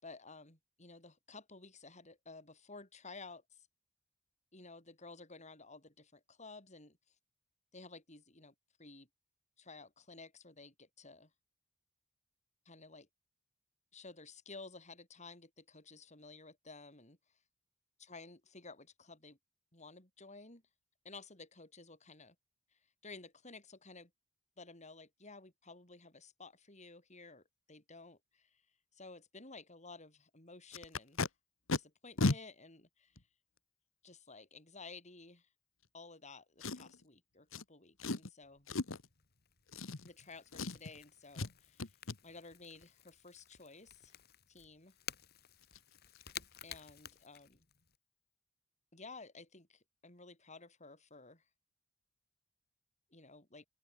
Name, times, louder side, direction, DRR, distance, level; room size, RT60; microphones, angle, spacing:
voice 1, 0.0-3.4 4.5-7.0 7.7-8.5 8.8-9.1 9.6-11.3 12.7-13.1 13.9-17.2 18.0-19.4 19.7-20.6 21.1-22.4 23.0-24.1 24.6-27.4 27.7-28.5 29.0-31.3 31.7-33.1 34.0-35.5 35.9-38.7 40.0-41.9 42.2-44.2 44.5-45.0 46.6-47.6 48.9-51.4 53.1-53.7, left 3 dB, 35° left, 6.9 m, -54 dB
Packing tape duct tape, 30.7-31.3 31.7-31.8 32.2-32.4 33.2-33.3 36.6-37.0 37.5-37.6 38.0-38.3 38.7-39.1 39.7-40.2 40.5-41.0 41.3-41.5 41.8-42.2 45.2-45.3 45.6-45.8 46.1-46.3 46.6-46.8 47.1-47.2, left 3 dB, 80° left, 1.5 m, -35 dB
Crackle / Crack, 38.4-48.0, left 9 dB, 50° left, 4.7 m, -54 dB
open air
head